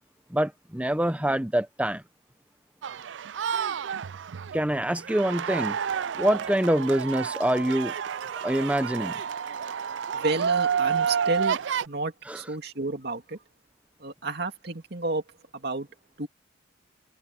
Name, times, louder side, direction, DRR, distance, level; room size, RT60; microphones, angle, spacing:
voice 1, 0.3-2.0 4.5-5.8 6.1-7.9 8.4-9.1 12.3-12.4, right 1 dB, 5° right, 0.8 m, -25 dB
sound 1, 2.8-11.9, right 7 dB, 75° right, 0.4 m, -30 dB
voice 2, 10.1-11.6 11.9-13.4 14.0-15.2 15.5-15.9 16.2-16.3, right 2 dB, 60° right, 2.5 m, -31 dB
open air
head